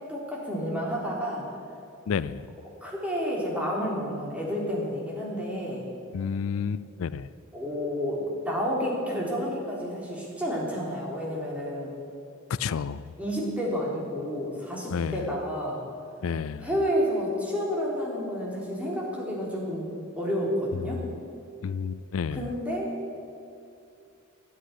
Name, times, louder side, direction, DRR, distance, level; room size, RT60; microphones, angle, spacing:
voice 1, 0.1-1.4 2.8-5.8 7.5-11.9 13.2-15.8 16.6-21.0 22.3-22.9, equal, 5° right, -4 dB, 3.6 m, -30 dB
voice 2, 2.1-2.5 6.1-7.3 12.6-13.0 14.9-15.2 16.2-16.7 21.6-22.4, left 6 dB, 85° left, 17 dB, 0.4 m, -30 dB
13.0 x 10.0 x 9.7 m, 2.5 s
head